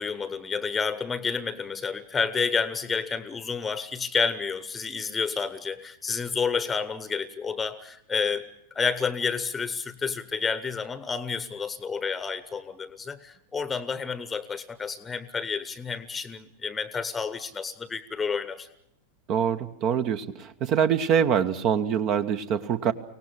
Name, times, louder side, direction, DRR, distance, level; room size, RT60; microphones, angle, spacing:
voice 1, 0.0-8.4 8.7-18.7, left 5 dB, 15° left, 15 dB, 1.0 m, -30 dB
voice 2, 19.3-22.9, right 8 dB, 40° right, 10 dB, 1.0 m, -24 dB
24.5 x 18.0 x 8.3 m, 0.76 s
figure-of-eight pair, 90°, 0 cm